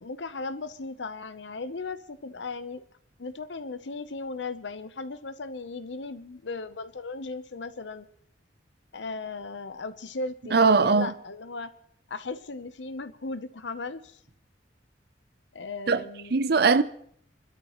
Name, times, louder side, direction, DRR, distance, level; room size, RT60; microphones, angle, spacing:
voice 1, 0.0-2.8 3.2-8.1 8.9-11.7 12.1-14.2 15.5-16.3, left 3 dB, 85° left, 0.9 m, -37 dB
voice 2, 10.5-11.1 15.9-16.0 16.3-16.8, right 4 dB, 60° right, 0.6 m, -20 dB
27.5 x 12.5 x 3.1 m
head